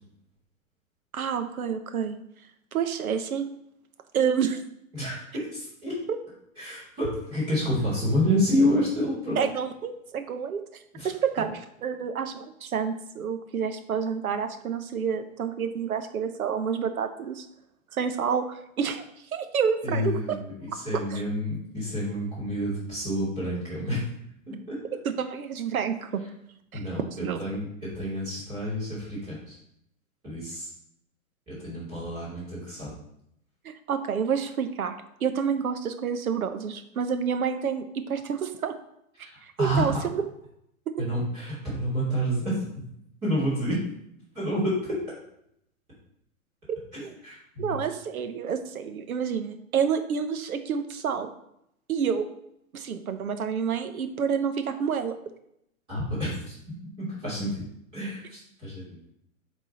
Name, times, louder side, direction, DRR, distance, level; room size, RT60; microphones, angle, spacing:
voice 1, 1.1-2.2 2.7-3.5 4.1-4.6 9.4-10.6 11.0-17.5 17.9-19.0 19.3-20.2 20.9-21.2 25.2-26.2 26.7-27.4 33.6-38.7 39.6-40.2 40.9-41.0 46.7-47.1 47.6-51.3 51.9-52.2 52.7-55.1, right 7 dB, 85° right, 8 dB, 1.0 m, -29 dB
voice 2, 4.9-6.0 6.6-9.4 10.9-11.1 19.8-24.0 24.5-24.8 26.7-29.6 30.2-30.7 31.5-32.9 39.2-39.9 41.0-42.8 43.2-43.8 44.3-45.0 46.9-47.8 55.9-56.6 57.0-57.6 57.9-59.0, equal, 10° right, -10 dB, 2.7 m, -29 dB
7.4 x 3.8 x 4.2 m, 0.75 s
hypercardioid pair, 175°, 42 cm